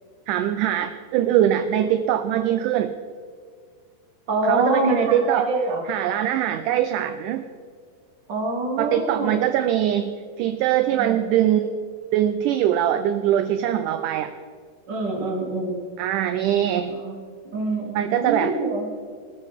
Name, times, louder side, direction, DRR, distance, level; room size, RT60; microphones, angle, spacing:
voice 1, 0.3-2.9 4.5-5.5 5.9-7.4 8.8-10.1 10.4-11.7 12.1-14.3 16.0-17.0 18.0-18.5, right 11 dB, 80° right, 9 dB, 2.0 m, -22 dB
voice 2, 4.3-5.8 6.5-6.6 8.3-9.3 10.9-11.2 14.9-15.8 16.9-17.2 17.4-18.9, right 2 dB, 35° right, -1 dB, 2.8 m, -25 dB
19.0 x 13.5 x 3.6 m, 2.1 s
omnidirectional pair, 4.0 m